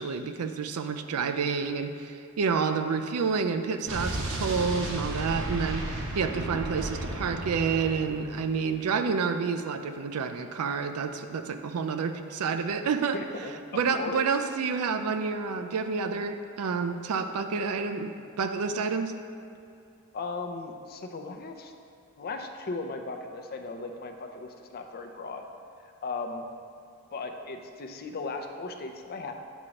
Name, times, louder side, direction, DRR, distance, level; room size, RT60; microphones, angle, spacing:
voice 1, 0.0-13.2 13.7-19.1, right 5 dB, 90° right, 8 dB, 0.4 m, -29 dB
Explosion, 3.9-8.7, right 1 dB, 60° right, 0.9 m, -34 dB
voice 2, 6.3-6.6 13.1-14.4 20.1-21.7 22.2-25.4 26.0-26.5 27.1-29.3, left 3 dB, 45° left, 5 dB, 0.5 m, -37 dB
8.0 x 2.9 x 6.2 m, 2.4 s
head